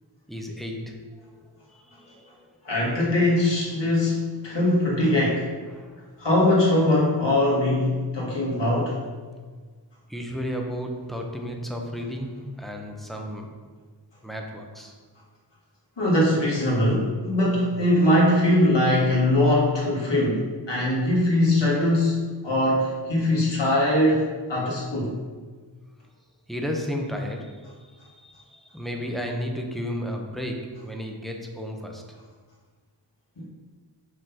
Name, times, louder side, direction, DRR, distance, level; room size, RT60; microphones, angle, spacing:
voice 1, 0.3-2.5 5.7-6.1 10.1-13.6 14.2-14.9 26.5-32.1, equal, ahead, 1 dB, 0.8 m, -33 dB
voice 2, 2.6-5.5 6.2-9.0 16.0-25.1 33.4-33.5, left 1 dB, 70° left, -5 dB, 1.8 m, -21 dB
5.3 x 3.8 x 5.6 m, 1.5 s
wide cardioid pair, 80°, 44 cm